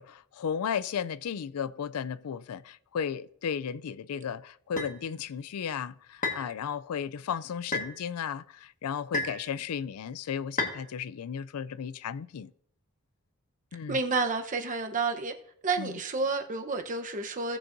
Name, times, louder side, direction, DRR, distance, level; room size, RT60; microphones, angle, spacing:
voice 1, 0.0-12.5 13.7-14.0 15.8-16.0, left 7 dB, 75° left, 0.4 m, -34 dB
sound 1, 4.8-4.9 6.2-6.5 7.7-7.9 9.1-9.4 10.6-10.8, left 3 dB, 35° left, 1.6 m, -30 dB
voice 2, 13.9-15.3 15.6-17.6, right 4 dB, 35° right, 0.9 m, -30 dB
17.5 x 7.1 x 2.6 m
head